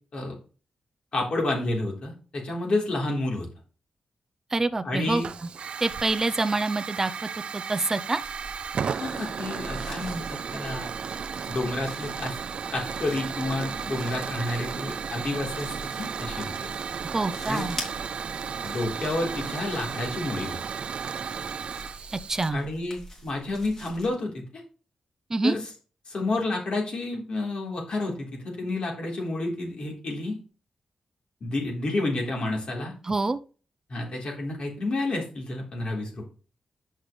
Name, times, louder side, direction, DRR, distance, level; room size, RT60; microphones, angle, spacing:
voice 1, 1.1-3.5 4.8-5.3 9.0-10.9 11.5-12.4 12.7-16.7 17.5-17.7 18.6-20.6 22.5-24.6 25.4-25.6 26.1-30.4 31.4-32.9 33.9-36.3, left 2 dB, 55° left, 3.9 m, -30 dB
voice 2, 4.5-5.2 5.8-8.2 17.1-17.8 22.1-22.6 25.3-25.5 33.0-33.4, right 3 dB, 25° right, 0.7 m, -26 dB
Hiss / Fire, 5.2-22.5, right 6 dB, 60° right, 0.5 m, -34 dB
sound 1, 8.2-24.1, equal, 25° left, 3.1 m, -44 dB
10.5 x 6.7 x 3.3 m
wide cardioid pair, 135°, 2 cm